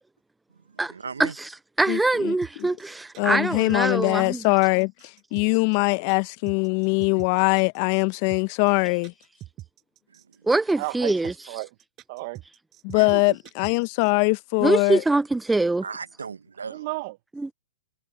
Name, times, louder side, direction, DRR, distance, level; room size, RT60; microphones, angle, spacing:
voice 1, 0.7-1.3 10.1-10.5 12.9-13.2 15.8-16.8, right 5 dB, 85° right, 1.2 m, -37 dB
voice 2, 1.2-1.5 1.8-4.4 10.4-11.3 14.6-15.8, right 2 dB, 5° right, 0.4 m, -23 dB
voice 3, 1.9-2.4 2.6-2.7 3.2-9.1 12.8-15.0, left 32 dB, 45° left, 1.0 m, -22 dB
sound 1, 2.4-14.1, right 15 dB, 30° right, 7.7 m, -44 dB
voice 4, 10.8-11.8 12.1-12.4 13.1-13.4 16.6-17.2, right 23 dB, 50° right, 1.6 m, -34 dB
hypercardioid pair, 115°, 0 cm